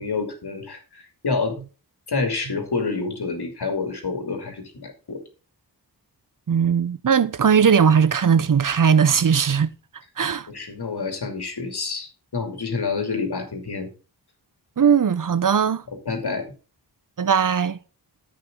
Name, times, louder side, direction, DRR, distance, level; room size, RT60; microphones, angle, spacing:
voice 1, 0.0-1.6 2.1-5.2 10.5-13.9 16.1-16.4, left 4 dB, 75° left, 2.6 m, -28 dB
voice 2, 6.5-9.7 10.2-10.5 14.8-15.8 17.2-17.8, right 7 dB, 55° right, 0.7 m, -19 dB
10.5 x 8.2 x 3.7 m
wide cardioid pair, 60°, 40 cm